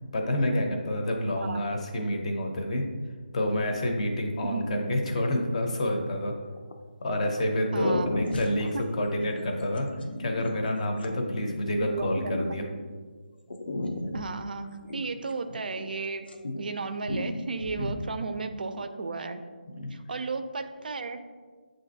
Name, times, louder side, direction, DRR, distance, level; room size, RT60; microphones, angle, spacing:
voice 1, 0.1-2.9 3.3-6.3 7.0-9.9 10.2-12.6 17.8-17.9 19.8-20.0, left 1 dB, 40° left, 2 dB, 0.6 m, -28 dB
voice 2, 4.5-4.9 7.7-8.8 11.8-12.7 14.1-16.3 16.6-19.4 19.9-21.3, right 4 dB, 60° right, 9 dB, 0.4 m, -34 dB
sound 1, 6.2-6.7 7.4-7.5 7.7-13.0 13.5-16.0 16.2-16.8 17.1-18.0, left 1 dB, 80° left, 0.6 m, -35 dB
7.2 x 2.5 x 2.6 m, 1.5 s
figure-of-eight pair, 165°, 5 cm